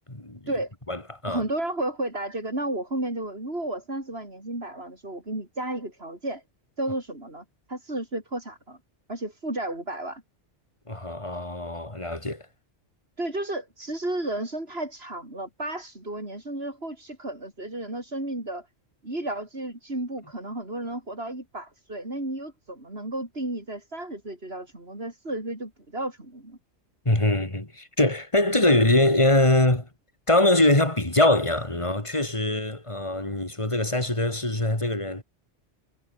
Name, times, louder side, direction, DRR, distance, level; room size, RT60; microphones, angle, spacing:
voice 1, 0.1-0.4 0.9-1.4 10.9-12.4 27.1-29.9 30.3-35.2, left 1 dB, 25° left, 3.7 m, -23 dB
voice 2, 1.3-6.4 6.8-8.8 9.1-10.2 13.2-18.7 19.0-26.6, right 1 dB, 60° right, 6.5 m, -33 dB
omnidirectional pair, 1.2 m